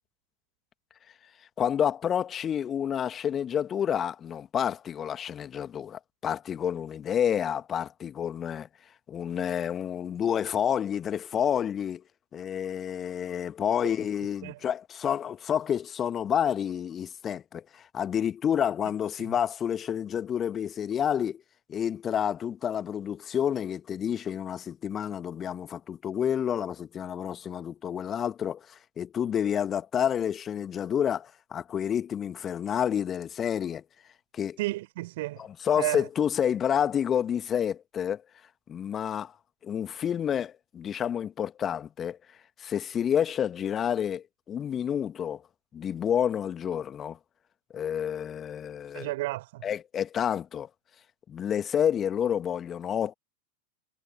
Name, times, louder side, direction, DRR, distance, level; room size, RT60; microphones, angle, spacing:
voice 1, 1.6-8.7 9.1-12.0 12.3-21.4 21.7-33.8 34.3-34.6 35.4-38.2 38.7-39.3 39.6-42.2 42.6-45.4 45.7-47.2 47.7-49.1 49.6-50.7 51.3-53.1, left 9 dB, 25° left, 1.7 m, -29 dB
voice 2, 34.6-35.4 35.8-36.1 48.9-49.7, right 19 dB, 50° right, 4.3 m, -32 dB
figure-of-eight pair, 90°, 0 cm